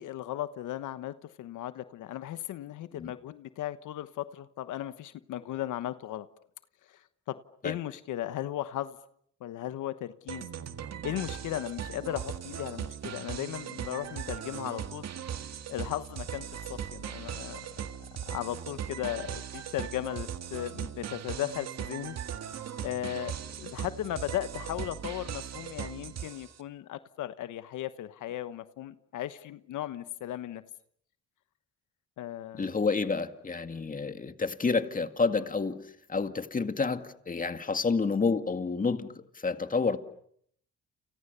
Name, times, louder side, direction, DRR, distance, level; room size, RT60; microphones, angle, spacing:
voice 1, 0.0-6.3 6.9-7.4 7.6-9.0 9.4-10.5 11.0-15.1 15.4-17.6 18.3-22.2 22.8-23.3 23.6-30.6 32.2-32.7, left 13 dB, 80° left, 1.2 m, -36 dB
sound 1, 10.3-26.6, right 9 dB, 60° right, 1.9 m, -39 dB
voice 2, 32.6-40.0, left 4 dB, 25° left, 2.1 m, -29 dB
29.5 x 29.0 x 6.9 m
cardioid pair, 90°, 30 cm